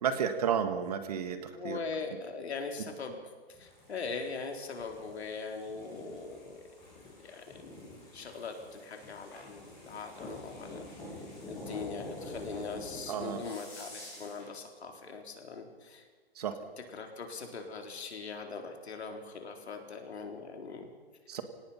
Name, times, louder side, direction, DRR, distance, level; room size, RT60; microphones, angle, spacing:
voice 1, 0.0-1.8 13.1-13.5 16.4-16.6 21.3-21.4, right 8 dB, 40° right, 9 dB, 1.7 m, -32 dB
voice 2, 1.5-3.2 3.5-6.6 6.9-10.9 11.5-16.1 16.9-20.9, left 4 dB, 80° left, 3 dB, 4.0 m, -41 dB
sound 1, 3.5-14.5, left 1 dB, 10° left, 7.8 m, -47 dB
25.5 x 18.0 x 5.8 m, 1.4 s
hypercardioid pair, 170°, 32 cm